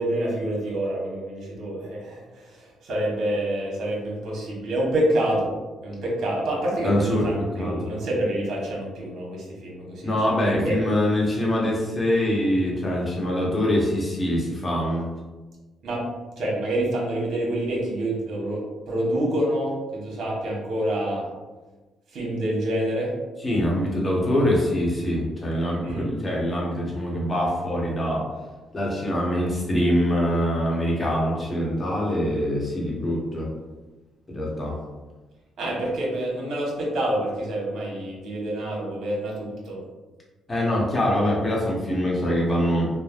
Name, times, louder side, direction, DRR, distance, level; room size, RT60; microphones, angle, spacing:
voice 1, 0.0-5.5 5.8-10.8 15.8-16.0 16.4-21.2 22.1-23.1 25.8-26.1 35.6-39.8, right 1 dB, 70° right, -4 dB, 1.0 m, -27 dB
voice 2, 6.8-7.3 7.6-7.9 10.0-15.1 23.4-28.3 28.7-33.5 34.3-34.8 40.5-42.9, equal, 25° left, -3 dB, 0.9 m, -24 dB
3.2 x 2.1 x 2.3 m, 1.2 s
cardioid pair, 90°, 0 cm